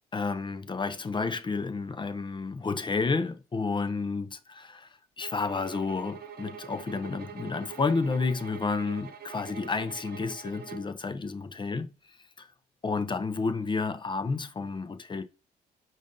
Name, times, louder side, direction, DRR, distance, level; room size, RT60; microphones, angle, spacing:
voice 1, 0.1-4.9 5.2-11.9 12.4-12.5 12.8-15.2, left 4 dB, 25° left, 0.6 m, -31 dB
sound 1, 5.2-11.0, right 7 dB, 60° right, 0.7 m, -44 dB
5.2 x 2.6 x 3.7 m
supercardioid pair, 75°, 18 cm